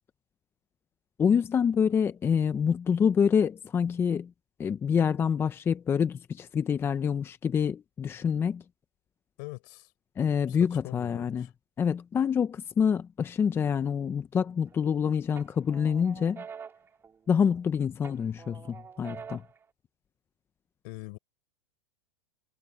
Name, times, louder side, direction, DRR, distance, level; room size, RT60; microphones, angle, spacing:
voice 1, 1.2-4.3 4.6-8.6 10.2-11.5 11.8-16.4 17.3-19.4, left 7 dB, 20° left, 0.7 m, -26 dB
voice 2, 9.4-9.9 10.5-11.5 20.8-21.2, left 28 dB, 55° left, 4.5 m, -43 dB
sound 1, 14.4-14.9 15.4-17.6 18.0-19.6, right 6 dB, 20° right, 3.6 m, -46 dB
supercardioid pair, 135°, 13 cm